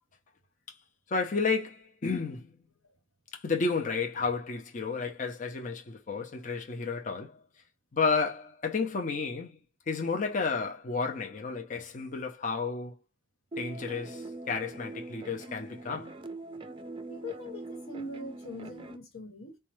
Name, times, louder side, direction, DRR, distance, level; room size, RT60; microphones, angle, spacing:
voice 1, 1.1-2.5 3.3-7.4 7.9-9.6 9.9-13.0 13.6-16.2, left 4 dB, 40° left, 0.5 m, -32 dB
sound 1, 13.5-19.0, right 2 dB, 25° right, 0.4 m, -43 dB
voice 2, 17.1-19.6, left 1 dB, 90° left, 1.2 m, -41 dB
4.2 x 2.2 x 3.0 m
head